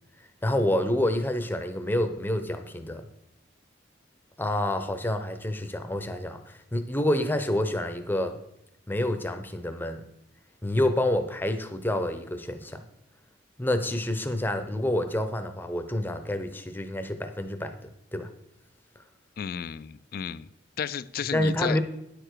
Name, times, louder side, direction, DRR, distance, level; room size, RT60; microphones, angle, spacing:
voice 1, 0.4-3.0 4.4-8.4 8.9-10.0 10.6-12.8 13.6-17.7 18.1-18.3 21.3-21.8, left 1 dB, 10° left, 0.7 m, -28 dB
voice 2, 19.4-20.5 20.8-21.8, left 7 dB, 55° left, 0.3 m, -33 dB
9.7 x 6.7 x 4.6 m
head